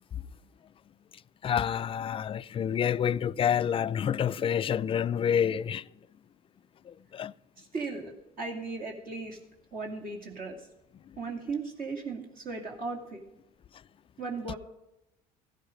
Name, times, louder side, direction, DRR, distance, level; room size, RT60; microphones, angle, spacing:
voice 1, 1.4-5.9 6.8-7.3 11.1-11.2, left 8 dB, 30° left, 0.4 m, -28 dB
voice 2, 7.6-9.4 9.7-10.7 11.2-13.2 14.2-14.6, right 4 dB, 45° right, 2.5 m, -37 dB
15.0 x 10.0 x 5.2 m
hypercardioid pair, 80°, 20 cm